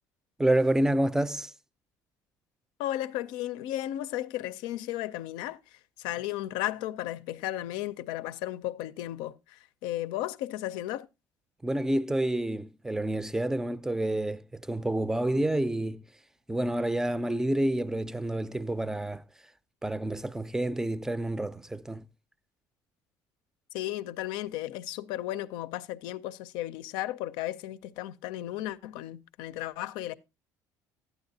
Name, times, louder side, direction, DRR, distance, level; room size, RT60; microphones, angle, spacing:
voice 1, 0.4-1.5 11.6-16.0 16.5-19.2 19.8-22.0, right 1 dB, 5° right, 0.5 m, -28 dB
voice 2, 2.8-11.1 23.7-30.2, left 14 dB, 85° left, 0.5 m, -34 dB
11.5 x 9.3 x 2.7 m
supercardioid pair, 95°, 8 cm